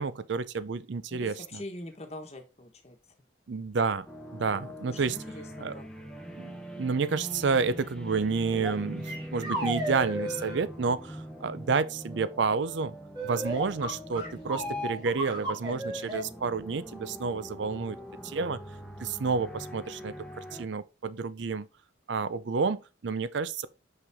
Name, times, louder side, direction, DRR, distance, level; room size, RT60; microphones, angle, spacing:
voice 1, 0.0-1.6 3.5-4.1 4.3-5.2 5.6-5.7 6.4-13.0 13.2-18.0 18.2-18.6 19.0-21.7 22.1-23.7, right 4 dB, 65° right, 0.5 m, -30 dB
voice 2, 1.1-3.0 4.5-5.9, left 1 dB, 30° left, 1.2 m, -44 dB
sound 1, 4.1-20.7, equal, 5° left, 0.9 m, -43 dB
sound 2, 8.6-8.7 9.0-10.6 13.1-16.2, right 1 dB, 20° right, 2.5 m, -33 dB
5.7 x 5.6 x 3.5 m
head